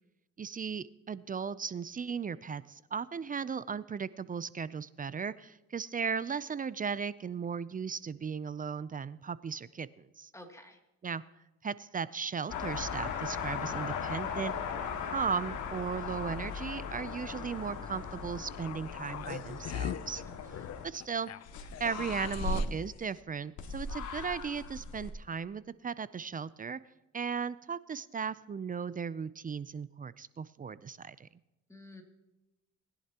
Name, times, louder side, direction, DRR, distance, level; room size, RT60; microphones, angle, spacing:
voice 1, 0.4-10.3 11.0-11.2 11.6-14.5 15.0-20.2 20.8-21.3 21.8-26.8 27.1-31.3, right 6 dB, 30° right, 17 dB, 0.5 m, -36 dB
voice 2, 10.3-10.8 20.2-20.3 31.7-32.0, left 1 dB, 10° left, 3 dB, 2.5 m, -50 dB
sound 1, 12.5-20.8 21.5-22.6 23.6-25.1, left 5 dB, 75° left, 2.0 m, -38 dB
sound 2, 18.5-22.9 23.2-23.3, left 10 dB, 55° left, 0.6 m, -42 dB
20.0 x 11.0 x 2.9 m, 0.98 s
cardioid pair, 90°, 30 cm